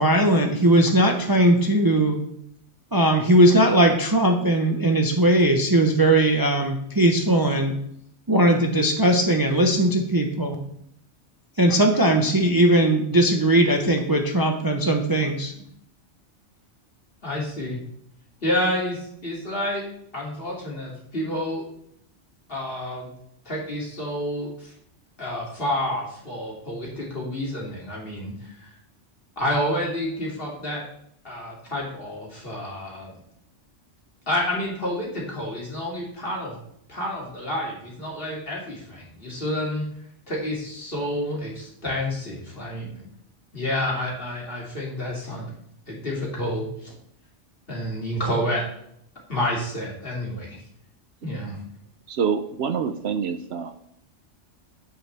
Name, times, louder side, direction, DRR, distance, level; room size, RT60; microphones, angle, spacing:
voice 1, 0.0-2.2 2.9-7.8 8.3-10.6 11.6-15.5, right 1 dB, 20° right, 3 dB, 0.8 m, -19 dB
voice 2, 17.2-17.8 18.4-19.8 20.1-21.6 22.5-23.1 23.4-24.7 25.2-28.3 28.6-28.7 29.4-30.8 31.2-33.1 34.3-36.6 36.9-39.8 40.3-43.0 43.5-45.5 45.9-46.9 47.7-48.6 49.3-50.6 51.2-51.6, left 1 dB, 50° left, -4 dB, 2.9 m, -29 dB
voice 3, 52.1-53.9, right 6 dB, 65° right, 9 dB, 0.8 m, -26 dB
9.2 x 8.4 x 3.4 m, 0.71 s
omnidirectional pair, 1.2 m